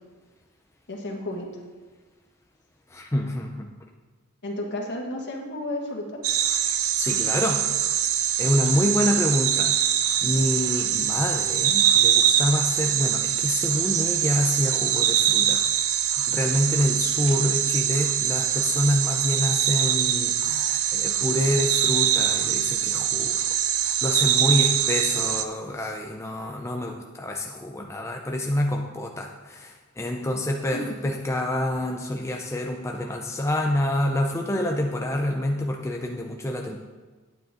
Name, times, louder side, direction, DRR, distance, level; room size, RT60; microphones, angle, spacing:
voice 1, 0.9-1.5 4.4-6.2 30.7-30.9, left 1 dB, 55° left, 0 dB, 1.8 m, -32 dB
voice 2, 2.9-3.7 6.7-7.7 8.4-9.8 10.2-15.6 15.9-23.3 23.8-36.8, left 1 dB, 15° left, 2 dB, 0.5 m, -27 dB
sound 1, 6.2-25.4, right 10 dB, 70° right, 0.7 m, -23 dB
9.8 x 9.2 x 3.8 m, 1.4 s
head